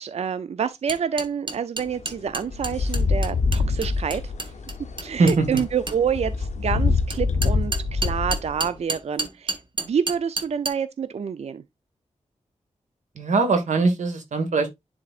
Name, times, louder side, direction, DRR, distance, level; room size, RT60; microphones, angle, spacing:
voice 1, 0.0-4.5 5.0-11.6, right 7 dB, 60° right, 0.4 m, -28 dB
sound 1, 0.9-6.0 7.1-10.7, right 3 dB, 40° right, 1.2 m, -30 dB
sound 2, 1.8-8.8, left 4 dB, 75° left, 0.8 m, -26 dB
voice 2, 13.1-14.7, right 3 dB, 80° right, 1.5 m, -21 dB
10.5 x 3.9 x 2.4 m
wide cardioid pair, 85°, 12 cm